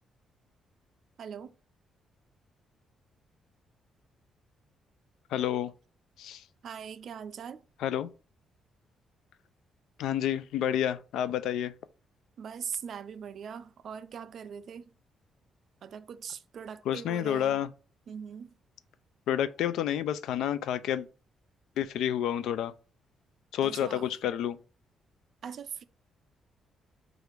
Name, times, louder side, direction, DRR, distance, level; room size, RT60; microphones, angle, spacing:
voice 1, 1.2-1.6 6.6-7.6 12.4-14.9 15.8-17.6 18.1-18.6 23.6-24.1 25.4-25.8, right 7 dB, 55° right, 0.3 m, -41 dB
voice 2, 5.3-5.7 6.2-6.4 7.8-8.1 10.0-11.7 16.9-17.7 19.3-21.1 21.8-22.7 23.5-24.6, left 10 dB, 90° left, 0.3 m, -29 dB
4.8 x 2.5 x 3.2 m
cardioid pair, 140°, 0 cm